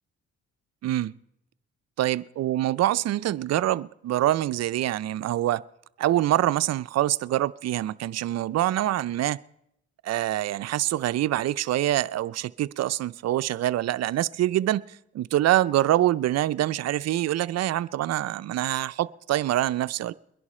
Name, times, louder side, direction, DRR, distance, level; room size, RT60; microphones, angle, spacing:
voice 1, 2.0-5.6 6.0-9.4 10.0-14.8 15.1-20.1, right 13 dB, 60° right, 16 dB, 0.5 m, -25 dB
22.0 x 11.0 x 4.3 m, 0.77 s
cardioid pair, 90°, 30 cm